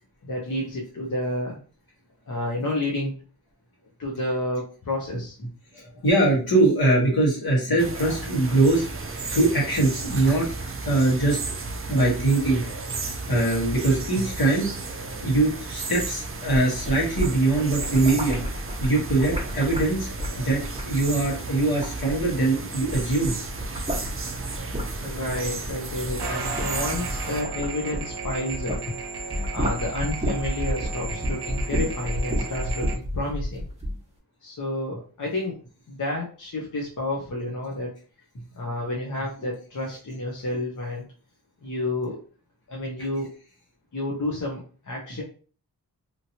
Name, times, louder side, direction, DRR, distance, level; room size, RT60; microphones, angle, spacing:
voice 1, 0.2-1.6 2.3-3.1 4.0-5.3 25.0-28.8 29.5-33.6 34.4-35.6 35.9-37.9 38.6-41.0 41.6-42.2 42.7-43.3 43.9-45.2, left 1 dB, 55° left, -2 dB, 0.8 m, -30 dB
voice 2, 5.7-8.9 9.3-10.5 10.8-11.4 11.9-12.6 13.3-14.7 15.2-18.4 18.8-20.1 20.4-23.3 38.6-38.7, right 2 dB, 70° left, -4 dB, 1.4 m, -22 dB
sound 1, 7.8-27.4, right 3 dB, 35° right, 0.5 m, -34 dB
sound 2, 16.5-22.5 22.8-28.9 29.2-34.0, equal, 15° right, 1.1 m, -31 dB
sound 3, 26.2-33.0, right 4 dB, 85° right, 0.6 m, -34 dB
2.9 x 2.9 x 2.8 m, 0.39 s
wide cardioid pair, 75°, 38 cm